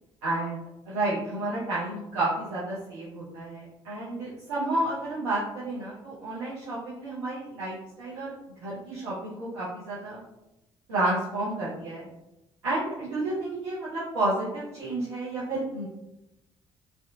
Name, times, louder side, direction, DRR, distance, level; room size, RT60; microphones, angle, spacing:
voice 1, 0.2-0.6 0.9-8.3 8.6-10.2 10.9-12.1 12.6-15.9, right 2 dB, 70° right, -9 dB, 0.6 m, -31 dB
2.6 x 2.1 x 2.6 m, 0.94 s
figure-of-eight pair, 45°, 15 cm